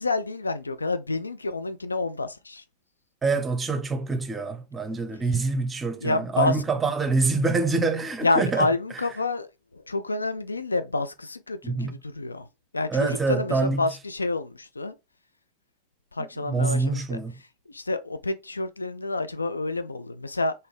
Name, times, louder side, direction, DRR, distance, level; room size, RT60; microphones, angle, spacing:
voice 1, 0.0-2.6 6.0-6.6 8.2-12.5 12.7-15.0 16.1-17.2 17.7-20.5, left 2 dB, 80° left, 0.3 m, -28 dB
voice 2, 3.2-8.7 11.6-12.0 12.9-13.8 16.5-17.3, right 3 dB, 15° right, 0.7 m, -25 dB
3.9 x 2.7 x 3.2 m
figure-of-eight pair, 90°, 0 cm